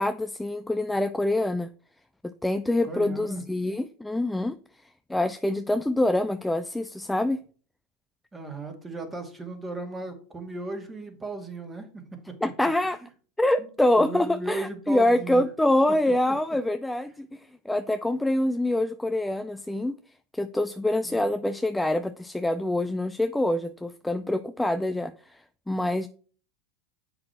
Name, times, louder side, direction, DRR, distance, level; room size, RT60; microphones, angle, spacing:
voice 1, 0.0-1.7 2.4-4.6 5.1-7.4 12.4-13.0 13.4-20.0 20.3-26.1, left 1 dB, 5° left, 0.5 m, -25 dB
voice 2, 2.8-3.4 8.3-12.3 12.9-13.0 13.6-13.7 14.0-15.4 21.0-21.2, right 2 dB, 15° right, 2.1 m, -36 dB
7.6 x 5.8 x 4.4 m
supercardioid pair, 105°, 0 cm